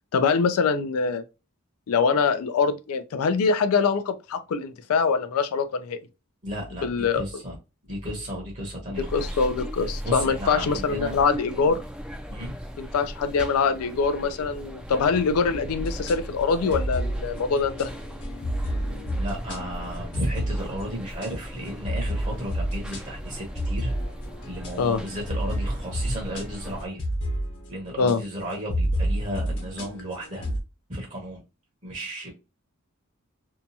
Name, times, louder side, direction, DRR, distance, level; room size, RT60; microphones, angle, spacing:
voice 1, 0.1-1.2 1.9-6.0 6.8-7.2 9.0-11.8 12.8-17.9 24.8-25.0 28.0-28.2, left 5 dB, 75° left, 0.4 m, -24 dB
voice 2, 6.4-6.9 7.2-7.6 7.8-9.4 10.0-11.2 12.3-12.5 19.2-23.9 24.5-27.0 27.7-30.5 30.9-31.4 31.8-32.3, equal, 35° right, 0.8 m, -34 dB
sound 1, 8.9-26.9, equal, 5° right, 0.4 m, -37 dB
sound 2, 15.8-21.5 21.8-28.1 28.5-30.6, equal, 55° left, 1.1 m, -30 dB
2.7 x 2.3 x 2.6 m
head